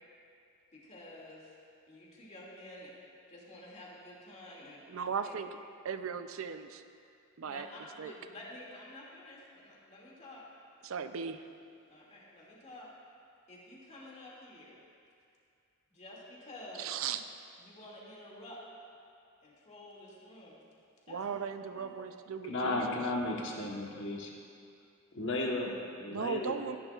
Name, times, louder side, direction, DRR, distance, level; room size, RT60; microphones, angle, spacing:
voice 1, 0.7-1.5 1.9-2.9 3.3-4.8 5.2-5.4 7.4-10.4 11.9-12.9 13.5-14.7 15.9-17.0 17.6-18.6 19.4-20.6 21.1-21.4 21.7-21.9, left 1 dB, 35° left, -5 dB, 2.3 m, -50 dB
voice 2, 4.9-5.5 5.8-6.8 7.4-7.7 8.0-8.1 10.8-11.4 16.8-17.2 21.1-22.8 26.1-26.8, right 6 dB, 75° right, 9 dB, 0.5 m, -37 dB
voice 3, 22.4-24.3 25.1-26.5, left 2 dB, 60° left, -1 dB, 1.2 m, -34 dB
15.5 x 10.5 x 2.4 m, 2.4 s
head